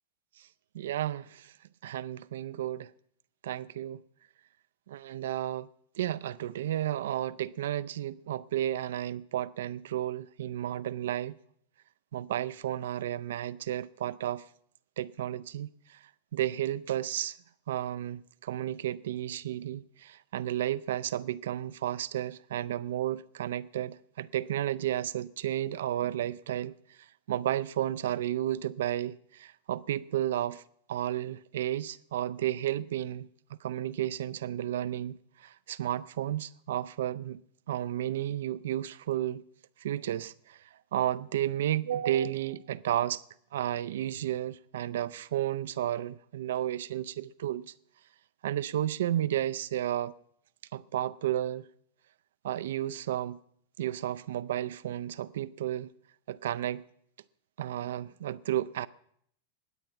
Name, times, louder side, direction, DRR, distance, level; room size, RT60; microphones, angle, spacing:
voice 1, 0.7-1.5 1.8-2.9 3.4-4.0 4.9-5.7 6.0-11.4 12.1-14.4 15.0-16.0 16.3-17.4 17.7-27.0 27.3-30.6 30.9-33.3 33.6-37.4 37.7-39.4 39.8-40.6 40.9-43.2 43.5-47.7 48.4-50.1 50.7-51.7 52.4-53.4 53.8-55.9 56.3-56.8 57.6-58.9, right 12 dB, 60° right, 0.4 m, -32 dB
20.5 x 8.5 x 5.8 m
figure-of-eight pair, 90°, 0 cm